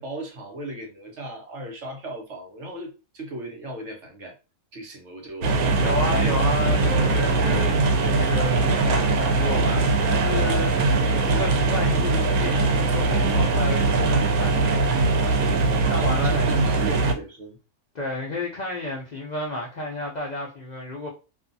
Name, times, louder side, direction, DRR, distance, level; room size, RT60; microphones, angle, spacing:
voice 1, 0.0-4.3 4.7-5.5 16.0-17.6, right 1 dB, 60° right, 1.0 m, -37 dB
sound 1, 5.4-17.1, right 3 dB, 85° right, 1.1 m, -21 dB
voice 2, 5.8-16.7 17.9-21.1, left 2 dB, 70° left, 0.4 m, -32 dB
2.6 x 2.3 x 2.5 m
omnidirectional pair, 1.5 m